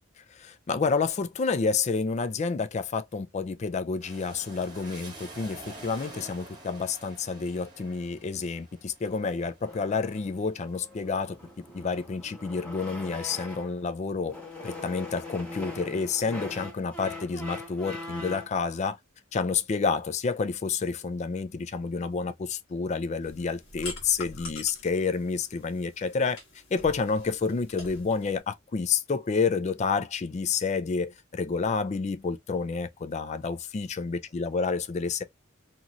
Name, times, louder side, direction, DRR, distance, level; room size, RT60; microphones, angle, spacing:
voice 1, 0.3-11.4 11.7-14.3 14.6-19.0 19.3-26.4 26.7-35.2, left 4 dB, 35° left, 0.4 m, -29 dB
sound 1, 4.0-11.7 12.1-12.9, right 2 dB, 20° right, 1.1 m, -48 dB
sound 2, 9.6-13.8 14.2-18.6, left 2 dB, 5° left, 1.1 m, -42 dB
sound 3, 23.2-28.4, left 3 dB, 85° left, 1.3 m, -45 dB
3.0 x 2.7 x 2.3 m
head